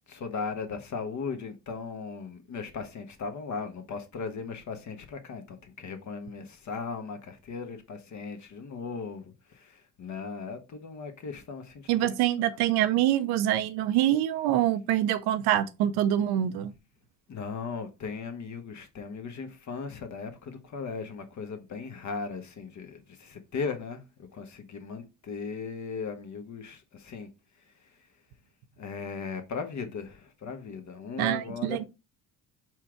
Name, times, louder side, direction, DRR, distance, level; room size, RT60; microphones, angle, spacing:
voice 1, 0.1-11.9 17.3-24.0 24.3-27.3 28.8-31.9, left 5 dB, 45° left, 1.1 m, -37 dB
voice 2, 11.9-16.7 31.2-31.9, right 12 dB, 75° right, 0.7 m, -25 dB
4.4 x 2.5 x 4.5 m
supercardioid pair, 65°, 38 cm